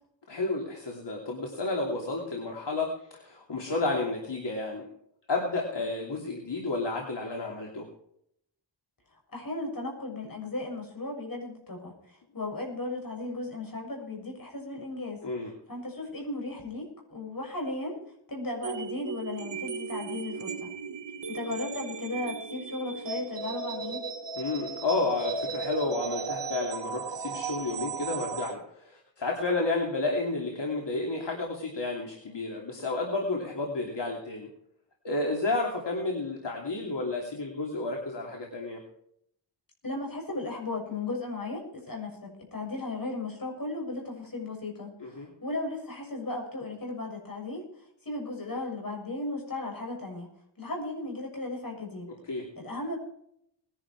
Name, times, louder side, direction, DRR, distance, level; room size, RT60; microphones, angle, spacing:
voice 1, 0.3-4.9 5.3-7.9 15.2-15.5 24.4-34.5 35.0-38.8 45.0-45.3 52.3-52.5, left 2 dB, 65° left, 0 dB, 2.9 m, -31 dB
voice 2, 9.3-15.2 15.7-18.0 18.3-20.7 21.3-24.1 39.8-47.6 48.0-50.3 50.6-52.1 52.6-53.0, left 2 dB, 45° left, 0 dB, 7.2 m, -36 dB
sound 1, 18.6-28.5, right 5 dB, 65° right, 1.4 m, -36 dB
20.0 x 11.0 x 4.7 m, 0.72 s
wide cardioid pair, 70°, 45 cm